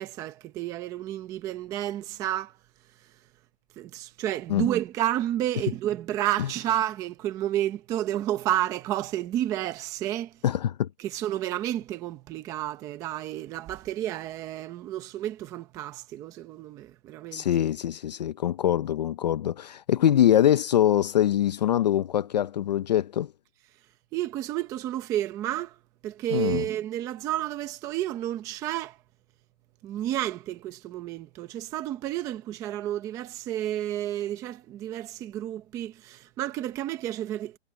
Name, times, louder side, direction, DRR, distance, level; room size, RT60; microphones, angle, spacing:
voice 1, 0.0-2.5 3.8-10.3 11.0-17.4 24.1-25.7 26.0-29.0 29.8-37.6, right 12 dB, 10° right, 0.8 m, -31 dB
voice 2, 10.4-10.9 17.3-23.3 26.3-26.6, left 11 dB, 40° left, 0.7 m, -23 dB
hypercardioid pair, 170°, 33 cm